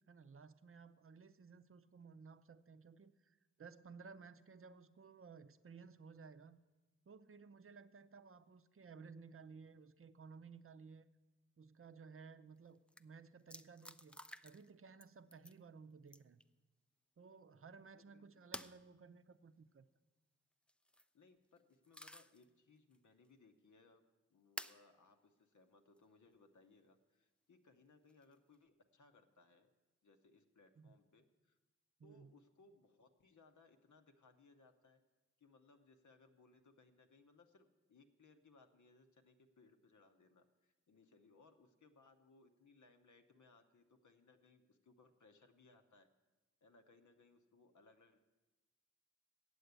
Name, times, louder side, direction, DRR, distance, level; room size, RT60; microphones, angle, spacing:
voice 1, 0.1-6.6 7.1-11.1 11.6-16.4 17.2-19.9 30.8-30.9 32.0-32.4, right 5 dB, 50° right, 12 dB, 0.5 m, -57 dB
sound 1, 12.6-12.7 12.9-13.0 13.5-14.7 15.0-15.6 16.1-16.4 18.5-18.8 20.7-21.1 21.6-22.4 22.9-23.0 24.6-24.8 26.0-26.1 28.1-28.6, left 1 dB, 5° left, 0.3 m, -51 dB
voice 2, 17.9-18.7 21.1-24.0 24.3-29.7 30.0-31.6 32.0-35.0 35.4-46.1 46.6-48.2, left 3 dB, 90° left, 6 dB, 0.8 m, -67 dB
8.1 x 7.8 x 8.1 m, 1.2 s
cardioid pair, 45°, 29 cm